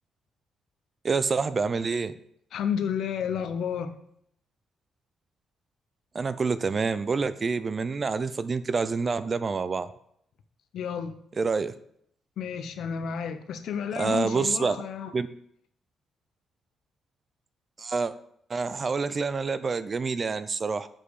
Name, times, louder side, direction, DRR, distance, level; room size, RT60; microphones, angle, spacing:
voice 1, 1.0-2.1 6.1-9.9 11.4-11.7 14.0-14.8 15.1-15.3 17.8-18.1 18.5-20.9, right 4 dB, 30° right, 14 dB, 0.5 m, -27 dB
voice 2, 2.5-3.9 10.7-11.2 12.4-15.1, left 7 dB, 75° left, 10 dB, 0.8 m, -31 dB
7.4 x 5.0 x 6.4 m, 0.70 s
cardioid pair, 130°, 0 cm